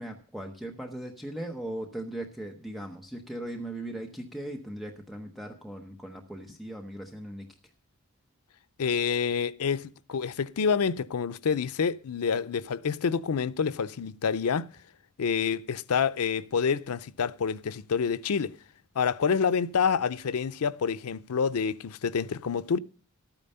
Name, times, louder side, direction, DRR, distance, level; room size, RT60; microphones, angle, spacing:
voice 1, 0.0-7.5, right 1 dB, ahead, 0.8 m, -38 dB
voice 2, 8.8-14.7 15.2-18.5 19.0-22.8, left 6 dB, 90° left, 0.5 m, -27 dB
12.0 x 8.9 x 5.5 m
head